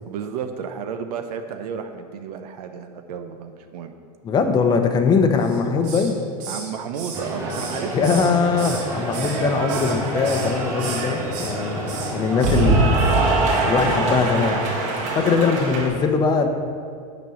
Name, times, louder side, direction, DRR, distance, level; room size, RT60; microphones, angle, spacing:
voice 1, 0.1-3.9 6.5-8.2 15.3-15.5, right 7 dB, 80° right, 7 dB, 0.8 m, -32 dB
voice 2, 4.2-6.2 7.9-11.8 12.1-12.9 13.7-14.6 15.1-16.5, left 5 dB, 20° left, 6 dB, 0.7 m, -21 dB
Hiss, 5.4-6.1 6.4-8.9 9.1-10.0 10.2-10.5 10.8-11.5 11.9-12.1 12.4-12.6 13.0-13.2 13.5-13.6, right 5 dB, 60° right, 2.2 m, -35 dB
sound 1, 7.1-14.4, equal, 15° right, 1.8 m, -31 dB
Cheering / Applause, 8.2-15.9, right 2 dB, 35° right, 1.9 m, -24 dB
8.5 x 5.3 x 7.6 m, 2.3 s
supercardioid pair, 155°, 20 cm